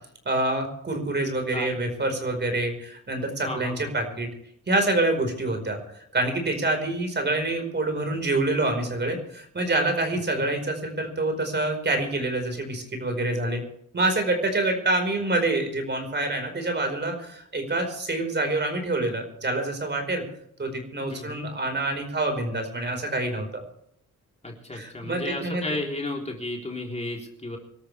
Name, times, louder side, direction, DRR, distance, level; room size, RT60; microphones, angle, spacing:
voice 1, 0.2-4.3 4.7-5.8 6.1-13.6 13.9-20.2 20.6-23.6 24.7-25.7, right 2 dB, 35° right, 4 dB, 4.9 m, -26 dB
voice 2, 3.5-3.9 10.4-10.6 21.1-21.5 24.4-27.6, left 2 dB, 20° left, -1 dB, 3.8 m, -33 dB
26.5 x 13.0 x 3.5 m, 0.71 s
wide cardioid pair, 125°, 32 cm